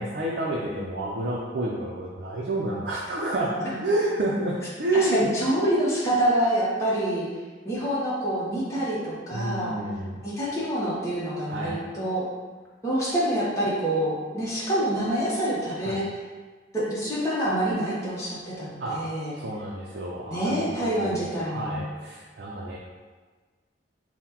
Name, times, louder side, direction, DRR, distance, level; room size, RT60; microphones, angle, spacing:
voice 1, 0.0-3.5 3.8-5.4 9.3-10.2 11.5-11.8 15.8-16.0 18.8-19.0 19.4-22.8, right 1 dB, 60° right, -4 dB, 0.5 m, -29 dB
voice 2, 4.9-7.3 7.6-9.8 10.2-12.2 12.8-16.1 16.7-19.3 20.3-21.9, right 1 dB, 15° left, -8 dB, 0.8 m, -26 dB
5.7 x 2.1 x 2.9 m, 1.4 s
head